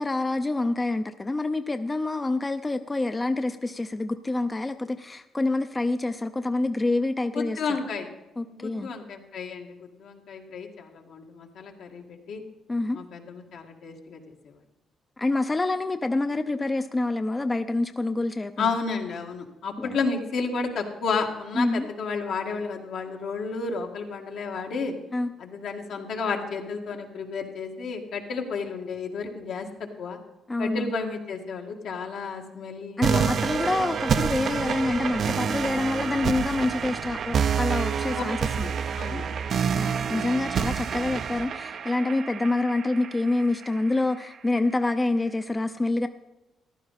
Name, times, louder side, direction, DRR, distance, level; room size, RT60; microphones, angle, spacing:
voice 1, 0.0-7.6 8.4-8.9 12.7-13.0 15.2-18.7 19.8-20.0 21.5-21.9 25.1-25.3 30.5-30.9 33.0-38.7 39.1-39.2 39.7-46.1, left 2 dB, 20° left, 9 dB, 0.5 m, -27 dB
voice 2, 7.3-8.1 8.5-12.4 12.9-14.5 18.6-24.9 25.4-29.7 30.0-30.2 30.6-33.3 38.1-38.2 38.5-39.8, left 4 dB, 75° left, 2 dB, 1.9 m, -32 dB
sound 1, 33.0-44.0, right 7 dB, 55° right, 0.5 m, -28 dB
14.5 x 11.5 x 4.1 m, 1.0 s
cardioid pair, 90°, 0 cm